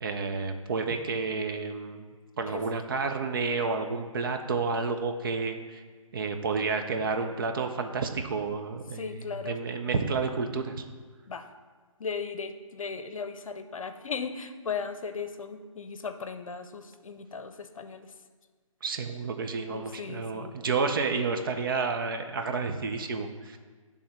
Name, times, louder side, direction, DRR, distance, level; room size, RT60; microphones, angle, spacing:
voice 1, 0.0-2.1 2.4-5.8 6.1-9.1 9.5-10.8 18.8-23.6, right 4 dB, 40° right, 5 dB, 0.6 m, -30 dB
voice 2, 8.9-9.6 11.3-11.5 12.0-18.1 19.7-20.5, left 5 dB, 70° left, 9 dB, 0.6 m, -37 dB
10.0 x 3.5 x 4.3 m, 1.5 s
figure-of-eight pair, 150°, 18 cm